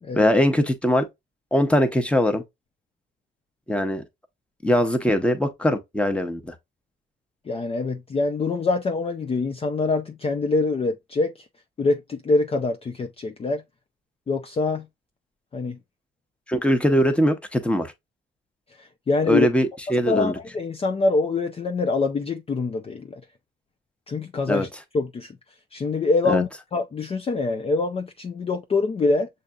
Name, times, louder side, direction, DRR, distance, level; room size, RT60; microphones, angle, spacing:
voice 1, 0.1-1.1 1.5-2.4 3.7-4.0 4.6-6.5 16.5-17.9 19.3-20.3 24.5-24.7 26.2-26.4, equal, 5° left, 0.9 m, -21 dB
voice 2, 7.5-11.5 11.8-13.6 14.3-14.9 15.5-15.8 18.8-19.5 20.1-23.2 24.1-24.7 24.9-25.4 25.7-29.3, left 3 dB, 30° left, 0.5 m, -25 dB
6.4 x 2.7 x 2.3 m
cardioid pair, 90°, 20 cm